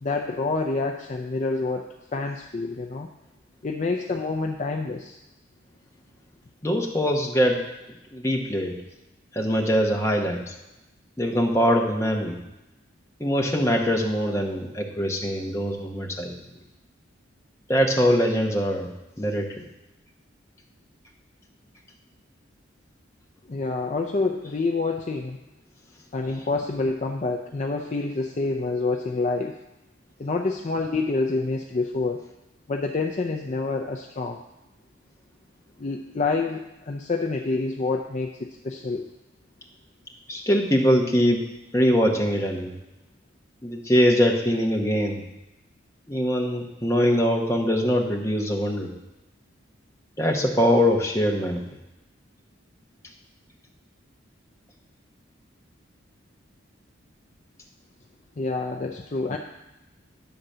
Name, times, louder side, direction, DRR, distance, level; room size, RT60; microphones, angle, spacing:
voice 1, 0.0-3.1 3.6-5.2 23.5-25.4 26.1-29.6 30.2-32.2 32.7-34.4 35.8-39.1 58.4-59.4, left 3 dB, 35° left, 2 dB, 0.4 m, -27 dB
voice 2, 6.6-7.6 8.1-8.7 9.3-10.5 11.2-12.4 13.2-16.3 17.7-18.9 19.2-19.5 40.3-41.4 41.7-42.8 43.6-45.2 46.1-48.9 50.2-51.6, equal, 15° left, 0 dB, 1.0 m, -22 dB
10.0 x 3.9 x 6.7 m, 0.96 s
head